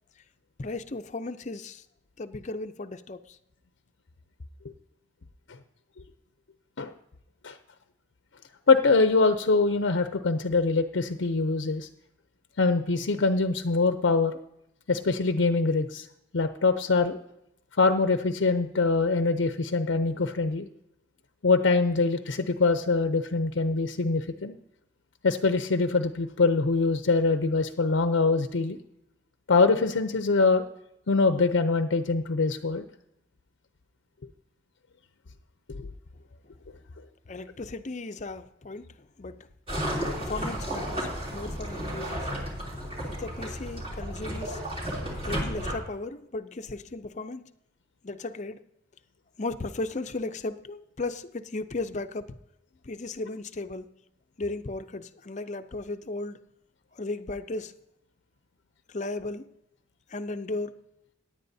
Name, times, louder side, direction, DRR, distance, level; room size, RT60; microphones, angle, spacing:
voice 1, 0.6-1.8 2.2-3.4 37.3-38.9 39.2-39.4 40.0-42.5 43.1-44.6 45.2-47.5 48.0-48.6 49.4-52.4 52.8-53.9 54.4-56.4 57.0-57.7 58.9-59.5 60.1-60.8, left 2 dB, 40° left, 10 dB, 0.6 m, -35 dB
voice 2, 8.7-11.9 12.6-14.4 14.9-16.1 16.3-17.2 17.8-20.7 21.4-24.6 25.2-28.8 29.5-30.6 31.1-32.8 35.7-35.9, left 3 dB, 80° left, 8 dB, 0.6 m, -24 dB
sound 1, 39.7-45.7, equal, 30° right, 3.1 m, -33 dB
17.0 x 10.5 x 2.7 m, 0.80 s
head